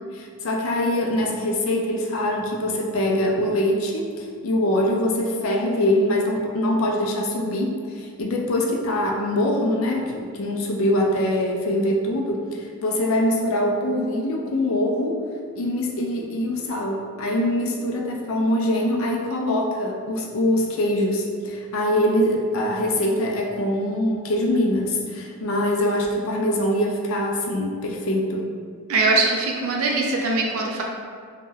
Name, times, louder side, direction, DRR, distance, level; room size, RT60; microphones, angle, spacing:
voice 1, 0.1-15.2 15.6-28.5, left 1 dB, 70° left, 0 dB, 0.4 m, -23 dB
voice 2, 28.9-30.8, right 3 dB, 75° right, 0 dB, 0.3 m, -21 dB
2.2 x 2.1 x 3.3 m, 2.1 s
head